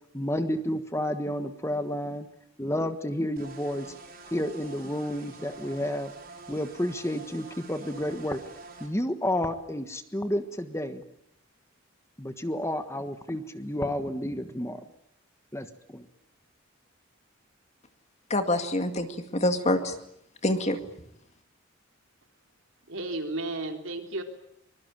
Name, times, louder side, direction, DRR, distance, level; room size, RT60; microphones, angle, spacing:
voice 1, 0.1-2.3 2.6-3.9 4.3-6.1 6.5-8.4 8.8-11.0 12.2-14.8 15.5-16.0, left 1 dB, 15° left, 9 dB, 1.4 m, -31 dB
sound 1, 3.4-8.9, right 3 dB, 45° right, 5.8 m, -47 dB
voice 2, 18.3-19.9 20.4-20.8, left 1 dB, 35° left, 7 dB, 2.2 m, -26 dB
voice 3, 22.9-24.2, right 2 dB, 75° right, 4 dB, 3.6 m, -33 dB
24.5 x 22.0 x 9.0 m, 0.76 s
head